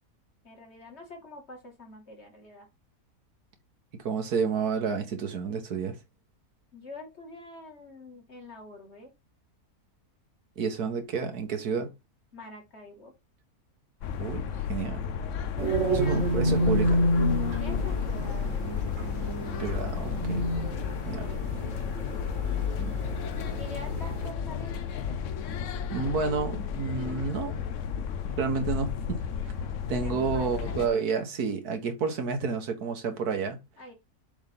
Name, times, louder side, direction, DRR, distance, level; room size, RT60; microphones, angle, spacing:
voice 1, 0.4-2.7 6.7-9.1 12.3-13.1 15.9-16.3 17.6-18.6 21.1-21.4 23.6-24.8 30.0-30.8 33.8-33.9, left 2 dB, 45° left, 2.5 m, -45 dB
voice 2, 4.0-6.0 10.6-11.9 14.2-15.0 15.9-17.0 19.6-20.5 21.1-21.3 22.8-23.0 25.9-27.5 28.3-29.2 29.9-33.6, right 5 dB, 80° right, 1.9 m, -30 dB
sound 1, 14.0-30.9, left 7 dB, 65° left, 1.0 m, -32 dB
sound 2, 15.6-24.3, equal, 55° right, 1.8 m, -30 dB
7.2 x 3.6 x 5.3 m
omnidirectional pair, 1.6 m